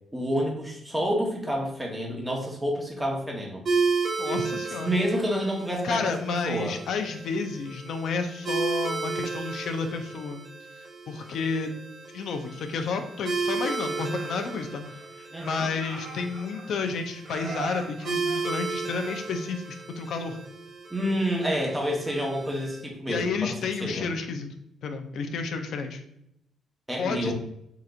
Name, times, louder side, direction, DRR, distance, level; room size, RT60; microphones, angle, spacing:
voice 1, 0.1-3.6 4.8-6.7 15.3-15.7 20.9-23.5 23.8-24.1 26.9-27.3, equal, 10° right, -1 dB, 1.0 m, -28 dB
sound 1, 3.7-22.8, right 4 dB, 45° right, 1.3 m, -34 dB
voice 2, 4.2-5.0 5.8-10.4 11.1-11.7 12.1-20.4 23.1-24.5 24.8-26.0 27.0-27.3, left 4 dB, 70° left, 6 dB, 0.5 m, -31 dB
Laughter, 13.4-15.1 15.4-16.9 17.2-19.5, right 3 dB, 65° right, 1.3 m, -41 dB
4.2 x 3.8 x 2.5 m, 0.77 s
cardioid pair, 100°, 0 cm